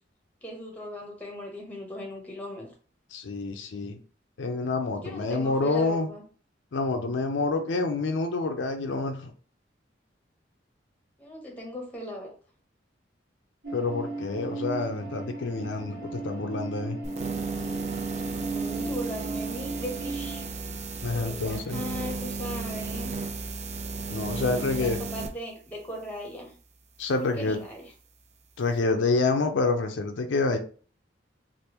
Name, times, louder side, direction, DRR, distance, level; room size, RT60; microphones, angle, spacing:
voice 1, 0.4-2.7 4.8-6.2 11.2-12.3 18.3-20.5 21.1-23.1 24.4-26.5 27.1-27.9, equal, 10° left, 0 dB, 0.8 m, -38 dB
voice 2, 3.1-4.0 4.4-6.1 6.7-9.3 13.7-17.0 21.0-21.8 24.1-25.0 27.0-27.6 28.6-30.6, left 3 dB, 85° left, 5 dB, 0.5 m, -27 dB
sound 1, 13.6-20.5, right 3 dB, 65° right, 1.6 m, -36 dB
sound 2, 17.0-25.3, right 4 dB, 40° right, 0.4 m, -34 dB
3.3 x 2.5 x 2.8 m, 0.40 s
head